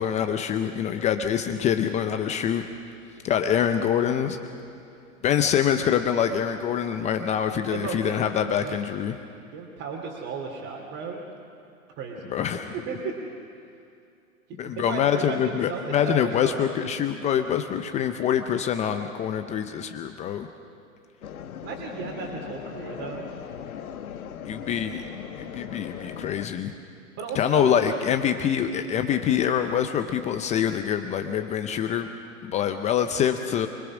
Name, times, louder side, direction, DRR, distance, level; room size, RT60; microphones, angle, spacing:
voice 1, 0.0-2.6 3.2-4.4 5.2-9.2 12.3-12.7 14.6-20.5 24.5-25.0 25.3-26.7 27.3-32.1 32.4-33.7, left 9 dB, 15° left, 7 dB, 0.5 m, -25 dB
voice 2, 7.7-8.3 8.6-8.8 9.5-11.2 12.0-12.4 12.9-13.1 14.6-16.7 21.6-23.2 24.5-24.9 27.2-27.8 28.3-28.5, right 5 dB, 35° right, -3 dB, 2.8 m, -35 dB
sound 1, 21.2-26.5, left 8 dB, 75° left, 1.4 m, -39 dB
25.0 x 19.5 x 6.1 m, 2.5 s
hypercardioid pair, 125°, 43 cm